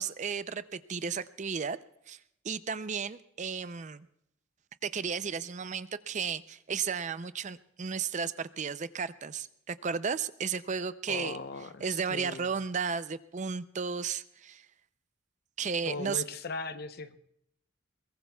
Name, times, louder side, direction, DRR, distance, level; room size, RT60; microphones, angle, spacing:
voice 1, 0.0-1.8 2.1-2.2 2.4-4.1 4.8-11.4 11.8-14.7 15.6-16.2, right 6 dB, 35° right, 14 dB, 0.5 m, -34 dB
voice 2, 11.1-12.5 15.9-17.2, left 3 dB, 50° left, 11 dB, 0.8 m, -39 dB
22.0 x 21.0 x 2.3 m, 0.76 s
head